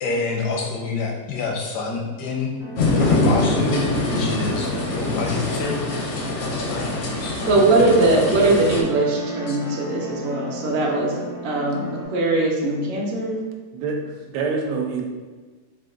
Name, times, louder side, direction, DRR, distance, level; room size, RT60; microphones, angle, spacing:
voice 1, 0.0-2.5 3.0-5.8 6.7-6.9 7.2-7.5 8.3-8.4 9.5-9.6, left 4 dB, 80° left, -1 dB, 1.3 m, -27 dB
sound 1, 2.6-12.0, right 1 dB, 5° right, 0.4 m, -35 dB
sound 2, 2.8-8.8, left 2 dB, 60° left, 0.8 m, -24 dB
voice 2, 7.5-11.9 12.1-13.4, right 2 dB, 60° right, -2 dB, 0.7 m, -20 dB
voice 3, 13.7-15.0, right 4 dB, 85° right, 2 dB, 1.2 m, -26 dB
3.7 x 2.5 x 3.7 m, 1.3 s
omnidirectional pair, 1.8 m